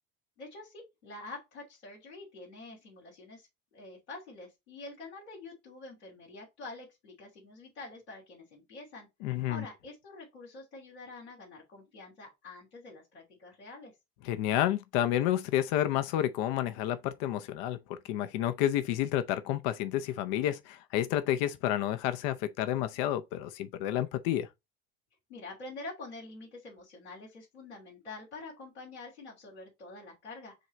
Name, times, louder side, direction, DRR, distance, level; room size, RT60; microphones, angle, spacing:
voice 1, 0.4-13.9 25.3-30.5, left 3 dB, 85° left, 2.6 m, -47 dB
voice 2, 9.2-9.6 14.2-24.5, left 12 dB, 60° left, 0.7 m, -30 dB
7.7 x 3.2 x 4.0 m
hypercardioid pair, 70°, 33 cm